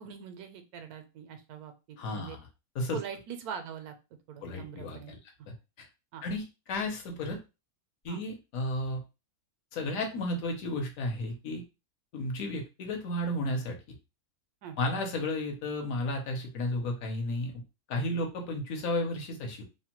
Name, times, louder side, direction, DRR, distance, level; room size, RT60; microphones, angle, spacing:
voice 1, 0.0-2.4 2.9-3.9 4.3-5.2 6.1-6.2 8.1-8.2 14.6-14.8, right 8 dB, 85° right, 7 dB, 1.1 m, -42 dB
voice 2, 2.0-2.4 2.7-3.0 4.4-5.2 5.8-5.9 6.2-7.4 8.0-9.0 9.7-11.6 12.1-13.8 14.8-17.6 17.9-19.6, left 1 dB, 70° left, 3 dB, 1.1 m, -33 dB
2.8 x 2.1 x 2.9 m, 0.28 s
omnidirectional pair, 1.6 m